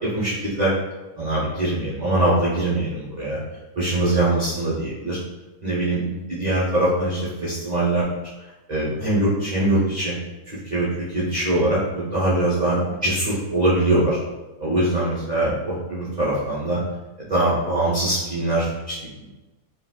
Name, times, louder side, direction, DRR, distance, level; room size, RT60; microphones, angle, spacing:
voice 1, 0.0-0.7 1.2-3.4 3.8-5.2 5.6-8.0 8.7-10.1 10.5-14.2 14.6-16.8 17.2-19.0, right 1 dB, 60° right, -9 dB, 0.4 m, -22 dB
3.8 x 2.1 x 2.2 m, 1.1 s
omnidirectional pair, 1.6 m